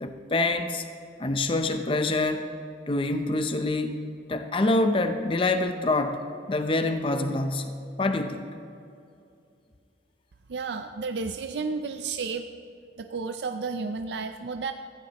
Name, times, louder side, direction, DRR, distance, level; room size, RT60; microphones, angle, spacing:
voice 1, 0.0-0.8 1.2-2.4 2.9-3.9 4.3-6.2 6.5-8.5, left 2 dB, 30° left, 7 dB, 0.6 m, -26 dB
voice 2, 10.5-12.4 13.0-14.7, right 4 dB, 70° right, 7 dB, 0.5 m, -32 dB
15.5 x 14.5 x 3.0 m, 2.5 s
head